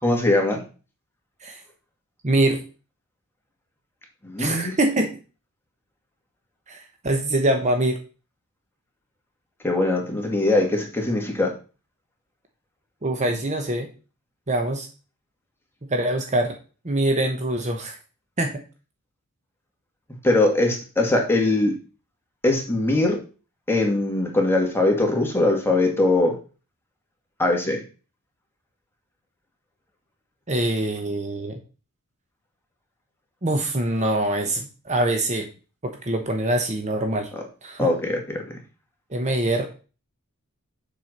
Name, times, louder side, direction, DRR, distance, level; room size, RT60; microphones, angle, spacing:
voice 1, 0.0-0.6 4.2-4.7 9.6-11.5 13.3-13.4 20.2-21.7 22.4-23.2 23.7-26.4 27.4-27.8 37.3-37.4 37.8-38.6, left 2 dB, 10° left, 1 dB, 2.1 m, -21 dB
voice 2, 2.2-2.6 4.4-5.1 6.7-8.0 13.0-13.9 14.5-14.9 15.9-16.5 16.8-18.0 18.4-18.6 30.5-31.6 33.4-35.5 36.0-37.3 37.6-37.9 39.1-39.6, right 1 dB, 30° right, 4 dB, 1.0 m, -24 dB
7.5 x 4.6 x 6.6 m, 0.35 s
head